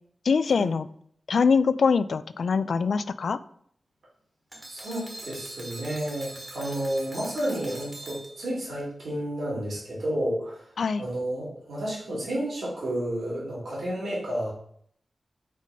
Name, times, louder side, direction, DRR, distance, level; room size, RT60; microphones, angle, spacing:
voice 1, 0.3-0.9 1.3-3.4 10.8-11.1, left 5 dB, 75° left, 14 dB, 0.3 m, -23 dB
sound 1, 4.5-8.8, right 1 dB, 30° right, 1.5 m, -42 dB
voice 2, 4.7-14.5, right 1 dB, 70° right, -7 dB, 2.7 m, -31 dB
4.8 x 4.1 x 5.5 m, 0.64 s
wide cardioid pair, 140°, 0 cm